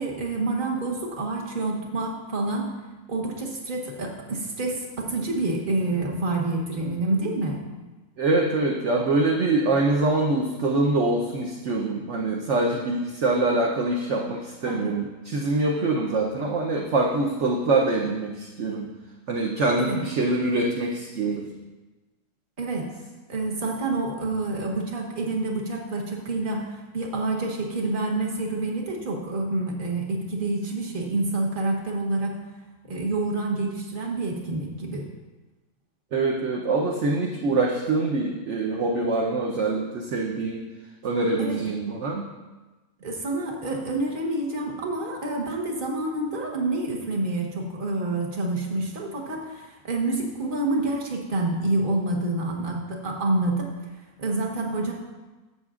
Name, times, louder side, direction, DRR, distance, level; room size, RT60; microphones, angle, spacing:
voice 1, 0.0-2.7 3.1-7.6 14.7-15.0 19.8-20.0 22.6-22.9 23.3-32.4 32.9-35.1 41.4-41.6 43.0-53.7 54.2-54.9, right 2 dB, 35° right, 0 dB, 1.3 m, -28 dB
voice 2, 8.2-18.9 19.3-21.5 36.1-40.6 41.0-42.3, right 2 dB, 60° right, -1 dB, 1.0 m, -24 dB
12.5 x 7.8 x 2.5 m, 1.2 s
omnidirectional pair, 1.6 m